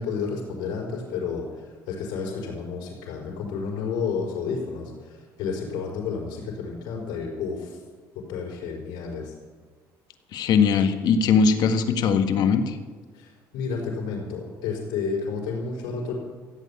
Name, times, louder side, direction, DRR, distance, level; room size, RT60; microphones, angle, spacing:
voice 1, 0.0-7.8 8.1-9.3 13.1-16.1, left 5 dB, 90° left, -3 dB, 4.9 m, -31 dB
voice 2, 10.3-12.8, left 5 dB, 65° left, 7 dB, 1.6 m, -20 dB
15.5 x 8.2 x 8.7 m, 1.5 s
cardioid pair, 100°, 8 cm